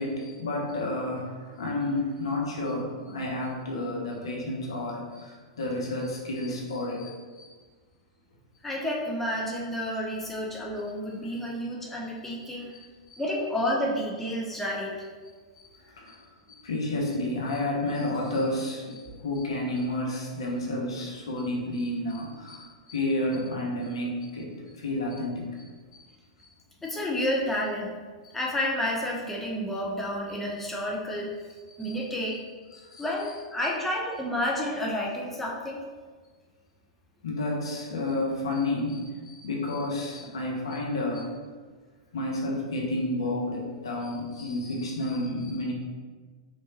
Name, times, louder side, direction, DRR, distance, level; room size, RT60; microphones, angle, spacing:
voice 1, 0.0-7.5 12.7-13.2 15.6-25.6 25.9-26.0 31.7-32.0 32.7-33.0 37.2-41.4 42.1-45.7, left 1 dB, 65° left, -2 dB, 0.8 m, -31 dB
voice 2, 8.6-12.7 13.2-15.1 26.8-27.9 28.3-31.3 31.8-32.4 33.0-35.8, left 1 dB, 5° left, -3 dB, 0.5 m, -30 dB
3.2 x 3.0 x 2.8 m, 1.4 s
figure-of-eight pair, 95°, 3 cm